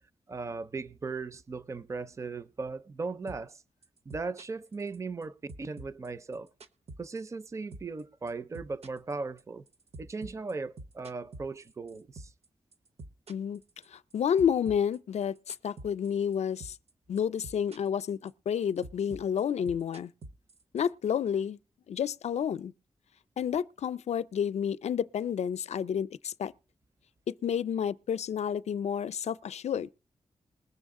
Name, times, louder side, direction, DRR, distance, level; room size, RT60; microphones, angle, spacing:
voice 1, 0.3-3.6 4.1-6.5 7.0-9.6 10.0-12.3, right 4 dB, 25° right, 0.5 m, -38 dB
sound 1, 3.3-3.6 3.8-5.2 5.5-7.5 7.7-8.0 8.3-12.5 12.7-14.1 14.4-16.3 16.6-16.9 17.2-18.0 18.3-20.9, right 2 dB, 70° right, 1.0 m, -46 dB
voice 2, 13.3-13.6 13.9-16.8 17.1-20.1 20.7-21.6 21.9-22.7 23.4-26.5 27.3-29.9, left 8 dB, 85° left, 0.5 m, -30 dB
20.5 x 7.1 x 3.6 m
wide cardioid pair, 150°, 11 cm